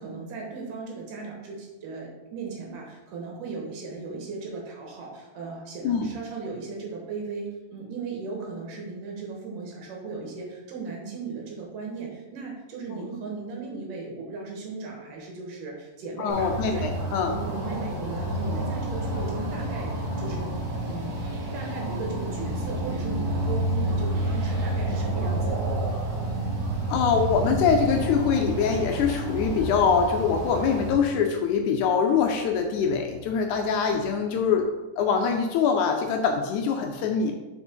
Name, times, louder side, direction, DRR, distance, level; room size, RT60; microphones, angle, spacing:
voice 1, 0.0-20.5 20.8-21.1 21.5-25.8, right 4 dB, 75° right, -1 dB, 2.9 m, -37 dB
voice 2, 16.2-17.3 26.9-34.7 35.0-37.3, left 6 dB, 80° left, 3 dB, 1.8 m, -24 dB
sound 1, 16.3-30.9, right 1 dB, 55° right, 1.1 m, -29 dB
5.7 x 5.0 x 4.4 m, 1.1 s
omnidirectional pair, 3.8 m